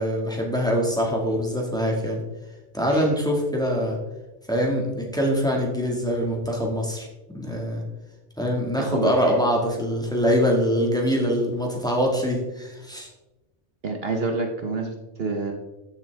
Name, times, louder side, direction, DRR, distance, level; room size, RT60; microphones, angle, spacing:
voice 1, 0.0-2.2 2.7-4.0 4.5-7.1 7.3-7.8 8.4-13.1, equal, 5° left, -1 dB, 1.9 m, -24 dB
voice 2, 8.8-9.3 13.8-15.5, right 3 dB, 55° right, 3 dB, 1.2 m, -28 dB
13.5 x 7.1 x 3.5 m, 1.1 s
omnidirectional pair, 1.3 m